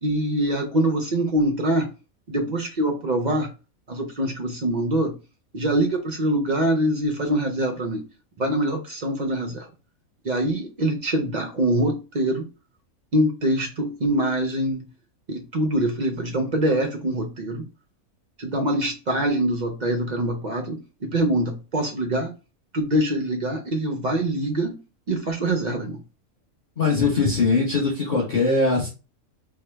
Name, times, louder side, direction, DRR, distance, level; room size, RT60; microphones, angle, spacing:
voice 1, 0.0-1.9 2.3-3.5 3.9-5.1 5.5-8.0 8.4-9.7 10.2-12.5 13.1-14.8 15.3-17.6 18.4-22.3 22.7-24.8 25.1-26.0, right 1 dB, 60° right, 0.4 m, -24 dB
voice 2, 26.8-28.9, left 3 dB, 35° left, 1.2 m, -21 dB
4.5 x 2.2 x 3.3 m
omnidirectional pair, 1.5 m